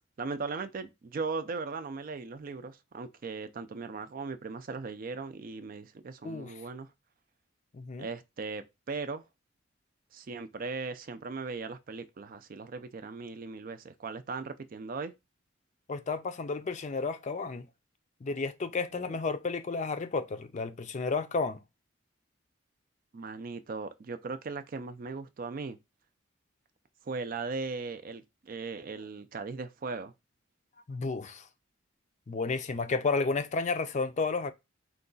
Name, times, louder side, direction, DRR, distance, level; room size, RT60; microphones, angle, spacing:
voice 1, 0.2-6.9 8.0-9.2 10.1-15.1 18.9-19.2 23.1-25.8 27.1-30.1, right 4 dB, 45° right, 0.4 m, -38 dB
voice 2, 7.7-8.1 15.9-17.7 18.2-21.6 30.9-31.4 32.3-34.5, left 4 dB, 35° left, 0.4 m, -32 dB
4.5 x 2.3 x 3.8 m
head